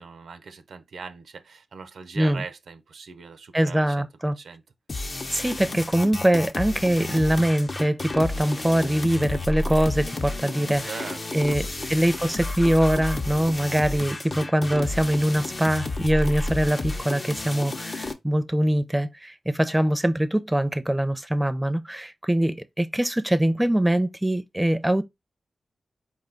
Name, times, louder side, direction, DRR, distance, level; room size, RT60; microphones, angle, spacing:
voice 1, 0.0-4.1 4.4-4.6 10.8-11.9, right 5 dB, 90° right, 0.5 m, -40 dB
voice 2, 3.5-4.4 5.3-25.0, right 1 dB, 10° right, 0.4 m, -23 dB
sound 1, 4.9-18.1, left 2 dB, 45° left, 0.6 m, -31 dB
4.6 x 2.2 x 3.7 m
cardioid pair, 65°, 0 cm